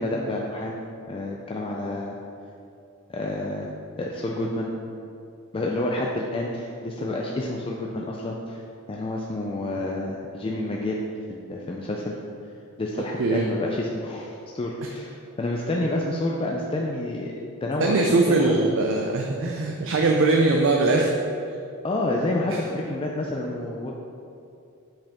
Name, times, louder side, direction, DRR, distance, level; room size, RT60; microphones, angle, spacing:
voice 1, 0.0-2.2 3.1-3.7 4.0-4.7 5.5-8.6 8.9-11.0 11.3-12.2 12.8-17.3 17.6-18.5 21.8-23.9, left 1 dB, 25° left, -1 dB, 0.4 m, -29 dB
voice 2, 17.8-21.1 22.5-22.6, right 3 dB, 60° right, 1 dB, 0.5 m, -21 dB
7.6 x 4.8 x 3.5 m, 2.6 s
head